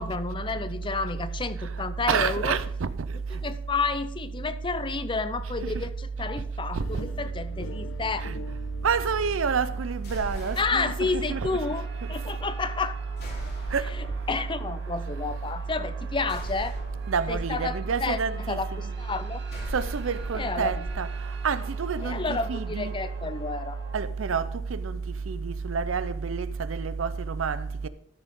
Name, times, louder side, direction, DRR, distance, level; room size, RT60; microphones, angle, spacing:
voice 1, 0.0-2.6 3.4-8.3 10.6-13.0 14.0-16.7 17.3-18.2 18.5-19.4 20.3-20.7 22.0-23.8, left 4 dB, 25° left, 0.6 m, -30 dB
voice 2, 2.1-2.9 5.6-5.9 6.7-7.0 8.2-8.4 8.8-11.6 13.7-13.9 17.1-18.9 19.7-21.1 21.4-22.9 23.9-25.0 25.3-27.9, right 5 dB, 80° right, 0.6 m, -28 dB
sound 1, 6.8-17.8, left 2 dB, 85° left, 0.9 m, -47 dB
sound 2, 10.0-11.1 13.2-14.2 16.3-17.4 19.5-20.9, left 1 dB, 55° left, 3.2 m, -39 dB
sound 3, 10.3-24.0, right 4 dB, 60° right, 1.3 m, -48 dB
13.0 x 6.5 x 3.6 m
head